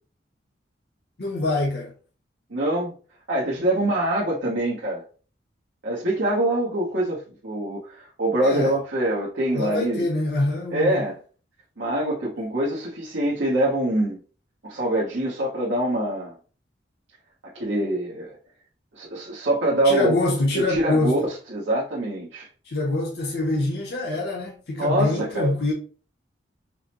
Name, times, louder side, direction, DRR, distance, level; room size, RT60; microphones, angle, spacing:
voice 1, 1.2-1.9 8.4-8.7 9.5-11.0 19.8-21.2 22.7-25.7, left 2 dB, 55° left, 0.7 m, -25 dB
voice 2, 2.5-2.9 3.3-5.0 5.8-10.1 10.7-11.2 11.8-14.2 14.6-16.3 17.5-18.4 18.9-20.1 20.5-21.2 21.5-22.5 24.8-25.5, right 1 dB, 85° right, 0.9 m, -24 dB
4.8 x 2.0 x 2.8 m
head